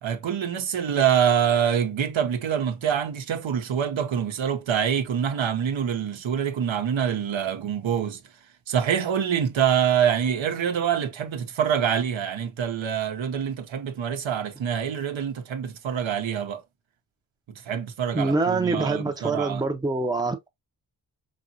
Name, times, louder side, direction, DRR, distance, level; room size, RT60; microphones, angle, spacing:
voice 1, 0.0-8.2 8.7-16.6 17.5-19.6, right 8 dB, 75° right, 0.9 m, -25 dB
voice 2, 18.1-20.5, right 3 dB, 10° right, 0.6 m, -25 dB
4.9 x 2.9 x 2.6 m
wide cardioid pair, 85°, 47 cm